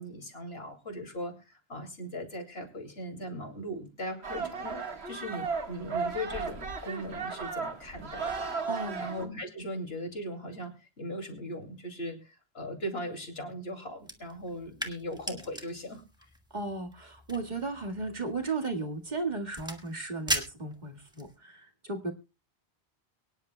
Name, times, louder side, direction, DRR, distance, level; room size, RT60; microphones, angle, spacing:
voice 1, 0.0-8.6 9.0-16.0, equal, 70° left, 4 dB, 2.8 m, -39 dB
sound 1, 4.2-9.3, right 5 dB, 80° right, 1.8 m, -35 dB
voice 2, 8.7-9.1 16.5-22.1, right 3 dB, 45° right, 3 dB, 2.0 m, -35 dB
sound 2, 14.0-21.4, equal, 5° right, 1.5 m, -40 dB
23.5 x 10.5 x 2.2 m, 0.28 s
omnidirectional pair, 1.1 m